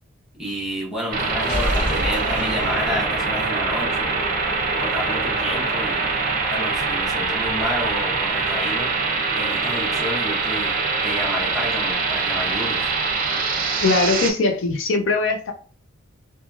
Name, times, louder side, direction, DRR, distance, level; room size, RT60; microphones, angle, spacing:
voice 1, 0.4-4.1 4.8-6.1 6.5-8.9 9.3-10.8 11.0-12.9, equal, ahead, -4 dB, 0.9 m, -30 dB
sound 1, 1.1-14.3, right 4 dB, 45° right, 0.6 m, -24 dB
sound 2, 1.4-3.5, left 1 dB, 40° left, 0.8 m, -28 dB
voice 2, 13.8-15.5, left 3 dB, 65° left, 4 dB, 0.5 m, -20 dB
3.0 x 2.3 x 2.4 m, 0.39 s
head